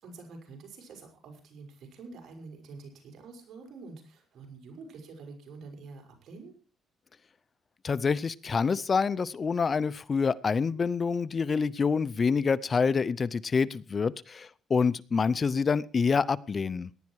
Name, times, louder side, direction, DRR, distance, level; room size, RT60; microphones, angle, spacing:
voice 1, 0.0-6.5, right 4 dB, 65° right, 3 dB, 5.9 m, -47 dB
voice 2, 7.8-16.9, left 5 dB, 40° left, 19 dB, 0.6 m, -27 dB
18.0 x 11.0 x 4.7 m, 0.37 s
cardioid pair, 90°, 0 cm